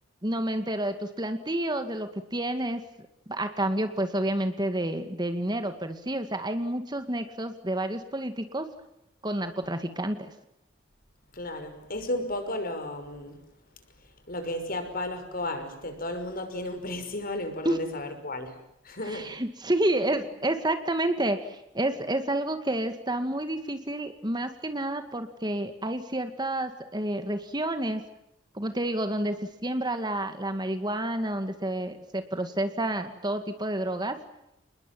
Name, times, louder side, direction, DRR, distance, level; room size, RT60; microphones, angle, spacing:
voice 1, 0.2-2.8 3.3-8.7 9.2-10.3 17.6-17.8 19.1-28.0 28.5-29.4 29.6-34.2, right 1 dB, 20° right, 8 dB, 2.2 m, -29 dB
voice 2, 11.3-13.4 14.0-19.4 20.1-20.2, left 1 dB, 50° left, 8 dB, 5.9 m, -34 dB
29.5 x 21.0 x 9.2 m, 0.83 s
head